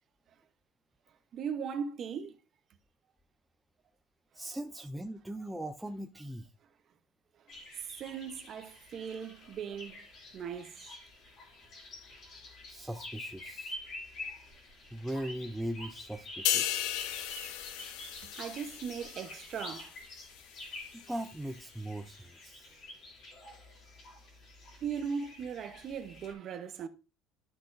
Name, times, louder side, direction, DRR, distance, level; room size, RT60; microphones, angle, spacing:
voice 1, 1.3-2.4 7.8-10.0 10.3-10.9 14.3-14.4 18.2-19.9 24.8-26.9, right 7 dB, 35° right, 0.8 m, -38 dB
voice 2, 4.3-6.5 12.7-13.7 14.9-16.9 20.9-22.7, right 1 dB, 5° right, 0.4 m, -39 dB
sound 1, 7.5-26.3, left 2 dB, 35° left, 3.0 m, -48 dB
sound 2, 16.5-20.0 20.4-20.6, left 11 dB, 85° left, 0.8 m, -35 dB
12.5 x 5.9 x 2.6 m
cardioid pair, 175°, 0 cm